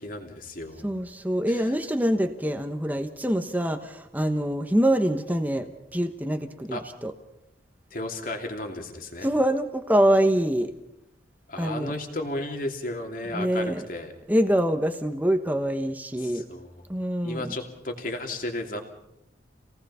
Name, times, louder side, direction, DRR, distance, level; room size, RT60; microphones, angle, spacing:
voice 1, 0.0-0.9 1.5-1.7 6.7-6.8 7.9-9.3 11.5-14.1 16.2-16.7 17.2-18.8, left 1 dB, 50° left, 2 dB, 2.9 m, -34 dB
voice 2, 0.8-7.1 9.2-10.7 11.6-11.9 13.3-13.8 14.3-16.4 16.9-17.5, right 1 dB, 10° right, 6 dB, 1.1 m, -25 dB
28.0 x 18.5 x 5.6 m, 0.84 s
head